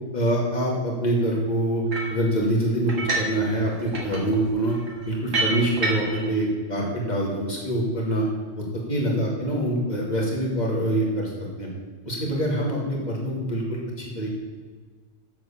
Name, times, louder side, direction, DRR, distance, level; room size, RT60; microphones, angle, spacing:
voice 1, 0.1-1.8 2.1-4.7 5.1-8.2 8.6-11.3 11.6-11.7 12.1-14.4, right 1 dB, 35° left, -3 dB, 2.7 m, -25 dB
sound 1, 1.9-2.2 2.9-3.4 3.7-6.3, right 2 dB, 80° right, 2.5 m, -28 dB
7.8 x 7.4 x 7.3 m, 1.5 s
omnidirectional pair, 1.3 m